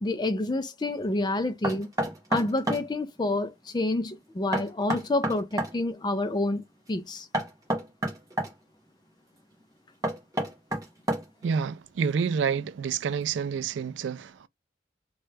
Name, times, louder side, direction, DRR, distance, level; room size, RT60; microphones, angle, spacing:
voice 1, 0.0-1.9 2.3-7.3, left 2 dB, 25° left, 0.4 m, -28 dB
Knock, 1.6-2.9 4.5-5.7 7.3-8.5 10.0-11.5, right 1 dB, 20° right, 0.8 m, -29 dB
voice 2, 11.4-14.5, right 6 dB, 90° right, 0.3 m, -28 dB
3.1 x 2.2 x 3.2 m
head